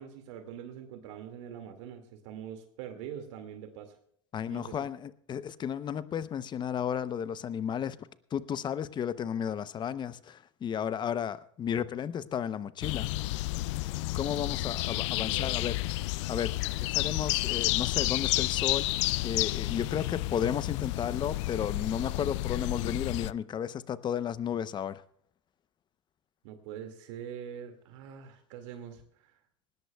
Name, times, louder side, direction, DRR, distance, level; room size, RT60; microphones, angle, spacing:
voice 1, 0.0-3.9 4.5-4.9 15.2-15.6 26.4-29.3, right 9 dB, 65° right, 6 dB, 2.1 m, -44 dB
voice 2, 4.3-8.0 8.3-13.1 14.1-15.8 16.3-16.5 16.8-18.9 19.2-25.0, left 8 dB, 25° left, 15 dB, 0.8 m, -33 dB
sound 1, 12.8-23.3, left 19 dB, 65° left, 0.4 m, -31 dB
19.5 x 17.5 x 2.3 m, 0.65 s
hypercardioid pair, 110°, 17 cm